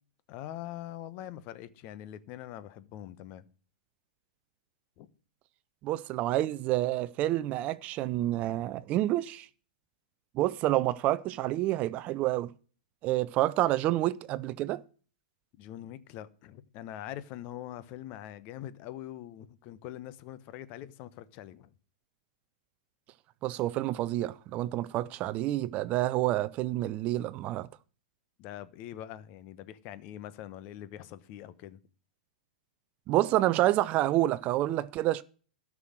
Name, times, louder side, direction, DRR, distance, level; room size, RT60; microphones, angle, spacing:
voice 1, 0.3-3.4 5.0-5.1 15.6-21.7 28.4-31.8, left 12 dB, 40° left, 1.1 m, -43 dB
voice 2, 5.8-9.5 10.3-12.5 13.0-14.8 23.4-27.7 33.1-35.2, right 15 dB, 35° right, 0.5 m, -28 dB
13.0 x 6.2 x 7.8 m
hypercardioid pair, 110°, 4 cm